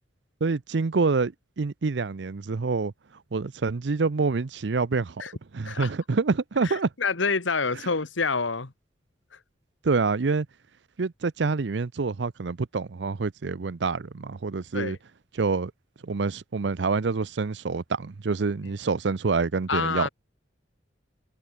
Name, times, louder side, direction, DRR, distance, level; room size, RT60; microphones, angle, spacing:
voice 1, 0.4-2.9 3.3-5.2 5.5-6.9 9.8-10.5 11.0-15.0 15.3-15.7 16.0-20.1, right 4 dB, 65° right, 0.6 m, -26 dB
voice 2, 6.6-8.7 9.3-9.4 14.7-15.0 19.7-20.1, left 4 dB, 85° left, 1.5 m, -27 dB
head